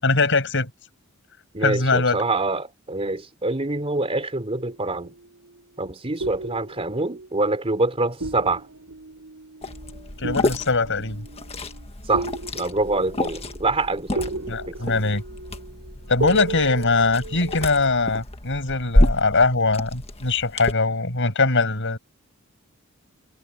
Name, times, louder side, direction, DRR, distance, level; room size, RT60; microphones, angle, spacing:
voice 1, 0.0-0.7 1.6-2.2 10.2-11.3 14.5-15.2 16.1-22.0, left 3 dB, 60° left, 7.3 m, -21 dB
voice 2, 1.5-5.1 5.8-8.7 12.1-15.2, right 2 dB, 30° right, 3.6 m, -26 dB
sound 1, 4.6-5.6 6.2-7.9 8.2-17.7, right 2 dB, 80° right, 5.5 m, -35 dB
Liquid, 9.6-20.7, left 1 dB, 30° left, 1.5 m, -28 dB
head